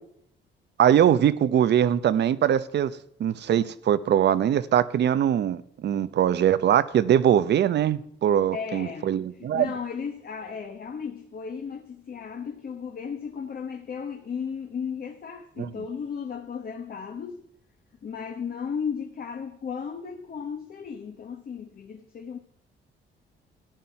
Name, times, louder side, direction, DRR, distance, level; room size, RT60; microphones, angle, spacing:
voice 1, 0.8-2.9 3.2-9.7 15.6-15.7, right 10 dB, 60° right, 16 dB, 0.7 m, -22 dB
voice 2, 8.5-17.4 18.0-22.4, left 6 dB, 50° left, 4 dB, 1.2 m, -35 dB
13.5 x 9.4 x 5.8 m, 0.71 s
cardioid pair, 90°, 20 cm